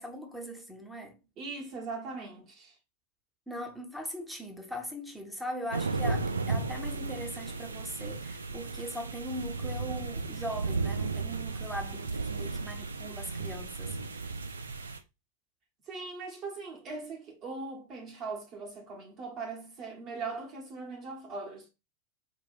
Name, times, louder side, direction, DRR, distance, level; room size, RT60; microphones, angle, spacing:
voice 1, 0.0-1.2 3.5-14.3, equal, ahead, 0.9 m, -40 dB
voice 2, 1.4-2.7 15.9-21.7, right 4 dB, 35° right, 1.1 m, -40 dB
sound 1, 5.7-15.0, right 3 dB, 75° right, 0.5 m, -34 dB
4.7 x 2.6 x 2.5 m
figure-of-eight pair, 90°, 0 cm